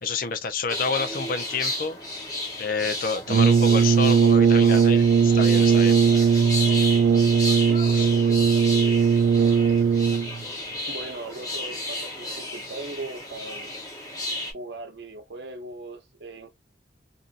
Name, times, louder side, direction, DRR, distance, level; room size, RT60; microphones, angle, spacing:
voice 1, 0.0-2.0 2.6-6.0 7.9-8.1, left 4 dB, 50° left, 0.5 m, -29 dB
sound 1, 0.7-14.5, left 1 dB, 20° left, 0.9 m, -33 dB
Brass instrument, 3.3-10.4, right 6 dB, 90° right, 0.3 m, -19 dB
voice 2, 7.6-9.8 10.9-13.7 14.5-16.5, right 2 dB, 65° right, 0.7 m, -39 dB
2.7 x 2.5 x 2.4 m
head